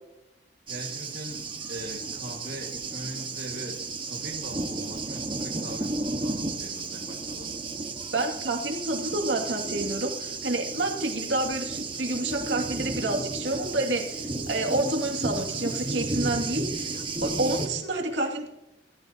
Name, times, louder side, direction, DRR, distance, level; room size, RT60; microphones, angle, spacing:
Thunder, 0.7-17.7, right 3 dB, 25° right, 1.6 m, -33 dB
voice 1, 0.7-1.4 1.7-7.5, right 1 dB, 55° right, -1 dB, 2.0 m, -40 dB
voice 2, 8.1-18.5, right 2 dB, 70° right, 2 dB, 2.5 m, -29 dB
24.0 x 15.0 x 2.9 m, 0.95 s
head